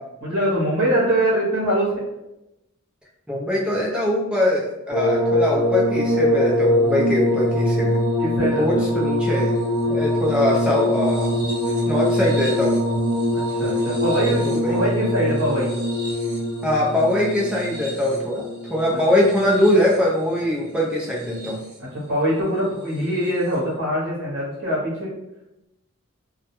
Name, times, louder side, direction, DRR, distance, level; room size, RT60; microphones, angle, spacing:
voice 1, 0.2-1.9 8.2-8.9 13.3-15.7 18.9-19.0 21.8-25.1, right 1 dB, 50° right, -7 dB, 0.8 m, -23 dB
voice 2, 3.3-8.0 8.6-9.5 9.8-11.3 11.9-12.8 14.4-14.8 16.6-21.6, left 1 dB, 5° right, -4 dB, 0.5 m, -22 dB
sound 1, 4.9-20.1 21.0-21.7 23.1-23.3, left 1 dB, 20° right, 0.8 m, -23 dB
2.2 x 2.1 x 2.9 m, 0.94 s
head